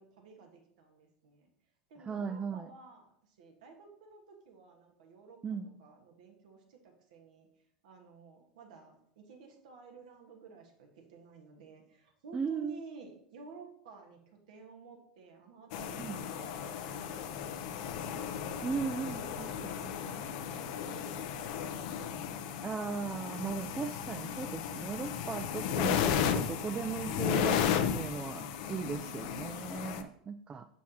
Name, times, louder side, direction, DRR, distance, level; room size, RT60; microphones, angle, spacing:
voice 1, 0.0-1.5 1.9-7.5 7.8-17.9 19.0-22.7 28.9-29.6, right 4 dB, 70° right, 2 dB, 1.4 m, -54 dB
voice 2, 2.0-2.7 5.4-5.7 12.3-12.8 16.0-16.2 18.6-19.5 22.6-27.6 27.9-30.7, right 6 dB, 20° right, 10 dB, 0.3 m, -37 dB
sound 1, 15.7-30.0, left 8 dB, 60° left, 0.6 m, -34 dB
6.9 x 6.2 x 2.9 m, 0.69 s
hypercardioid pair, 85°, 4 cm